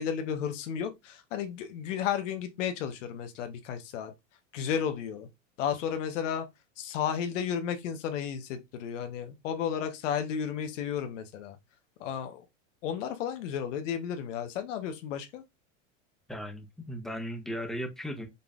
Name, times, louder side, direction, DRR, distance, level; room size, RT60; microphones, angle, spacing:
voice 1, 0.0-4.1 4.5-5.3 5.6-6.4 6.8-11.6 12.0-12.4 12.8-15.4, left 8 dB, 75° left, 1.1 m, -33 dB
voice 2, 16.3-18.3, equal, ahead, 1.2 m, -36 dB
5.5 x 3.8 x 2.5 m
hypercardioid pair, 105°, 37 cm